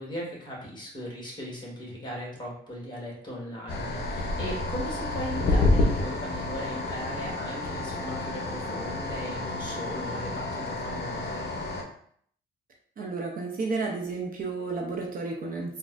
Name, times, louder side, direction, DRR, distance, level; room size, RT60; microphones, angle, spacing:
voice 1, 0.0-11.5, equal, 20° left, -3 dB, 1.4 m, -38 dB
sound 1, 3.7-11.8, left 2 dB, 55° left, 0.7 m, -29 dB
voice 2, 13.0-15.8, right 3 dB, 45° right, 0 dB, 0.6 m, -32 dB
3.8 x 2.2 x 2.4 m, 0.62 s
cardioid pair, 90°, 20 cm